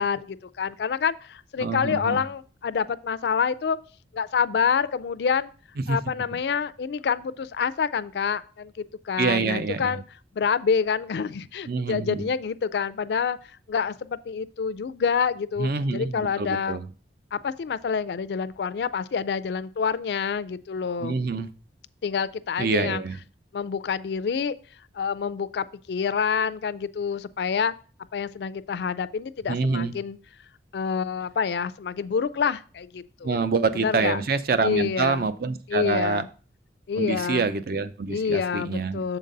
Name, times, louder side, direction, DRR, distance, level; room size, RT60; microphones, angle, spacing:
voice 1, 0.0-3.8 4.1-5.5 5.9-10.0 10.3-13.4 13.7-16.8 17.3-21.2 22.0-23.0 23.5-24.5 24.9-27.7 28.1-30.2 30.7-34.2 34.6-35.3 35.7-36.3 36.9-37.5 38.1-39.2, left 6 dB, 65° left, 15 dB, 0.3 m, -27 dB
voice 2, 1.6-2.2 5.9-6.0 9.2-10.0 11.7-12.3 15.6-16.9 21.0-21.5 22.6-23.2 29.5-29.9 33.2-36.2 36.9-39.2, right 4 dB, 55° right, 12 dB, 0.5 m, -26 dB
7.3 x 3.9 x 5.2 m, 0.39 s
head